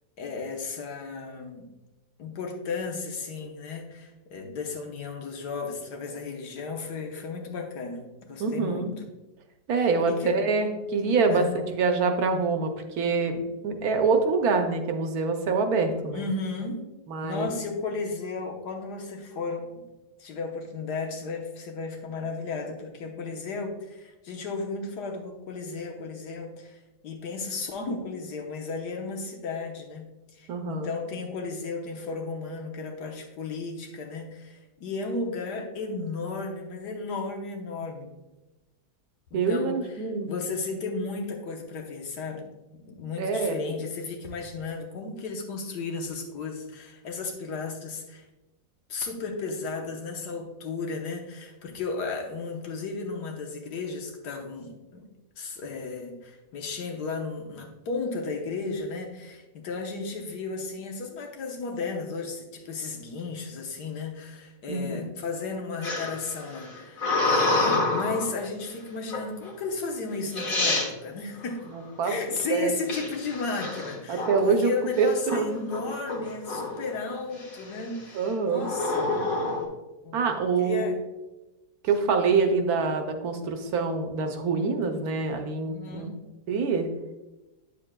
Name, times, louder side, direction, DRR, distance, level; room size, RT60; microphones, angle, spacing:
voice 1, 0.2-1.7 2.2-9.0 9.8-10.3 11.3-11.5 16.1-16.9 17.2-19.8 20.2-38.1 39.3-42.5 42.7-48.2 48.9-55.0 55.4-71.7 72.0-79.2 80.0-80.2 80.6-81.0 85.6-86.2, left 4 dB, 75° left, 2 dB, 1.5 m, -34 dB
voice 2, 8.4-8.9 9.7-16.3 17.1-17.5 30.5-30.9 39.3-40.3 43.2-43.8 64.7-65.1 72.0-72.1 72.5-72.7 74.1-74.7 75.0-75.6 78.2-78.7 80.1-80.8 81.8-86.1 86.5-86.9, right 4 dB, 70° right, 6 dB, 1.1 m, -25 dB
sound 1, 65.8-68.3 69.1-69.5 70.1-70.2 70.4-70.9 72.9-74.6 75.0-75.4 75.7-76.9 77.4-77.8 78.6-79.6, left 2 dB, 55° left, 1.7 m, -27 dB
8.7 x 6.7 x 2.2 m, 1.0 s
omnidirectional pair, 1.8 m